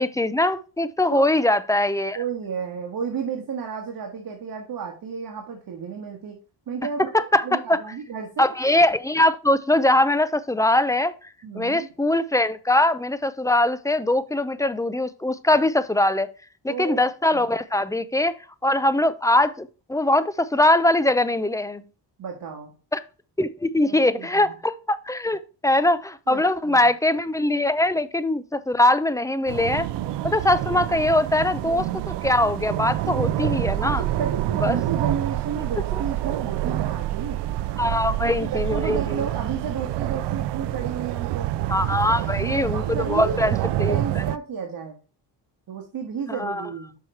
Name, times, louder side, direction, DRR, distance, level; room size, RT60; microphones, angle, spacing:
voice 1, 0.0-2.2 7.1-7.8 8.4-11.1 11.6-16.3 16.6-18.3 18.6-21.8 22.9-23.0 23.4-29.9 30.2-34.0 34.6-34.8 37.8-39.2 41.7-44.0 46.4-46.6, left 1 dB, 10° left, 0.4 m, -22 dB
voice 2, 2.1-6.4 6.7-7.1 7.4-8.5 11.4-11.9 16.7-17.5 22.2-22.7 23.8-24.6 26.3-26.9 33.3-33.4 33.8-37.4 38.0-41.5 41.9-45.0 45.7-47.0, right 6 dB, 55° right, 1.5 m, -32 dB
sound 1, 29.5-44.4, right 14 dB, 85° right, 0.5 m, -27 dB
6.2 x 4.8 x 4.4 m
cardioid pair, 105°, 41 cm